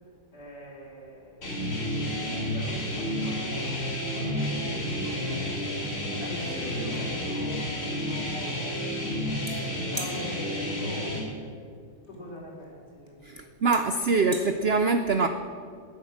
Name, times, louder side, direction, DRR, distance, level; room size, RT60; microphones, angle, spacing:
voice 1, 0.3-5.5 6.1-8.8 9.6-11.7 12.1-13.5, equal, 70° left, -5 dB, 3.8 m, -43 dB
sound 1, 1.4-11.2, left 1 dB, 50° left, 3.0 m, -31 dB
sound 2, 5.6-5.7 6.0-7.5 9.5-9.6 10.0-10.2 12.0-12.2 13.1-13.2 13.7-13.8 14.2-14.5, right 1 dB, 20° right, 1.6 m, -38 dB
voice 2, 13.2-15.3, right 4 dB, 80° right, 8 dB, 0.5 m, -24 dB
11.5 x 9.3 x 7.2 m, 2.1 s
omnidirectional pair, 1.8 m